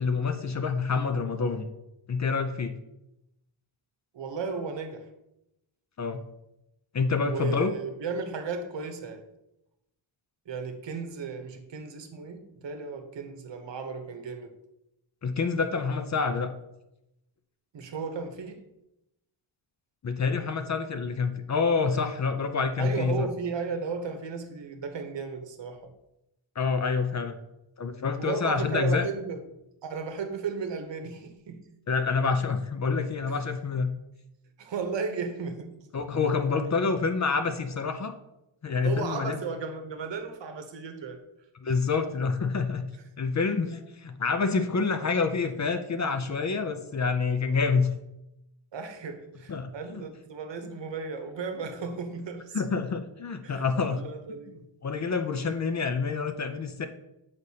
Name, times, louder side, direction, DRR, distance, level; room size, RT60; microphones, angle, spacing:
voice 1, 0.0-1.7 2.1-2.7 6.0-6.2 6.9-7.7 15.2-16.5 20.0-23.3 26.6-27.4 27.8-29.0 31.9-33.9 35.9-38.1 38.6-39.4 41.6-42.9 43.2-47.9 49.5-50.0 52.5-54.0 54.8-56.9, left 4 dB, 40° left, 8 dB, 0.5 m, -27 dB
voice 2, 4.1-5.1 7.2-9.2 10.5-14.5 17.7-18.6 22.8-25.9 28.2-29.4 29.8-31.6 33.3-33.4 34.6-35.8 38.8-41.2 41.7-41.8 48.7-52.6 53.4-54.6 55.0-55.1, right 5 dB, 65° right, 7 dB, 0.9 m, -35 dB
7.9 x 5.1 x 2.8 m, 0.89 s
wide cardioid pair, 130°, 48 cm